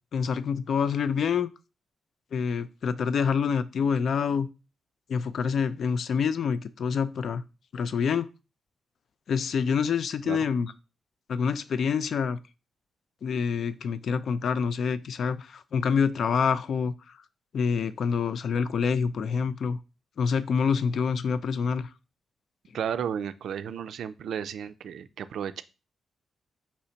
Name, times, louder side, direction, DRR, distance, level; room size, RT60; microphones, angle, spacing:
voice 1, 0.1-1.5 2.3-4.5 5.1-7.4 7.7-8.3 9.3-10.7 11.3-12.4 13.2-17.2 17.5-19.8 20.2-21.9, left 6 dB, 70° left, 14 dB, 0.3 m, -27 dB
voice 2, 22.7-25.6, right 8 dB, 75° right, 13 dB, 0.3 m, -33 dB
4.2 x 2.7 x 4.3 m, 0.30 s
supercardioid pair, 55°, 0 cm